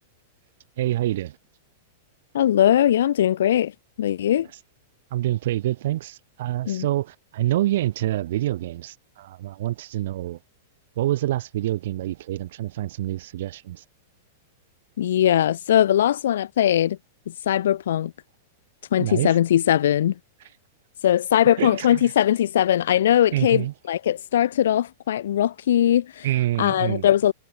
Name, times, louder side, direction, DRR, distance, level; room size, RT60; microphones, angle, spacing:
voice 1, 0.8-1.4 5.1-10.4 11.0-13.8 19.0-19.4 21.6-22.1 23.3-23.7 26.2-27.1, right 14 dB, 55° right, 4.1 m, -26 dB
voice 2, 2.3-3.7 4.0-4.5 6.7-6.9 15.0-17.0 17.5-18.1 18.9-20.1 21.0-26.3 26.6-27.3, left 11 dB, 70° left, 0.4 m, -20 dB
supercardioid pair, 175°, 0 cm